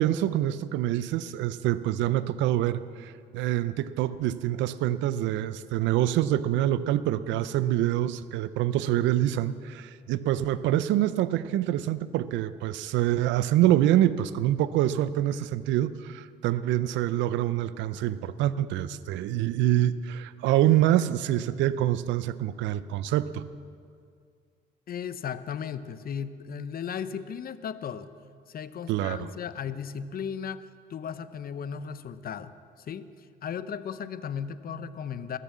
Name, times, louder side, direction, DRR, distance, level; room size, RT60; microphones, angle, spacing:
voice 1, 0.0-23.4 28.9-29.3, right 13 dB, 85° right, 15 dB, 0.5 m, -26 dB
voice 2, 24.9-28.1 28.5-35.4, left 7 dB, 55° left, 13 dB, 0.7 m, -36 dB
19.5 x 6.9 x 7.4 m, 2.2 s
supercardioid pair, 75°, 19 cm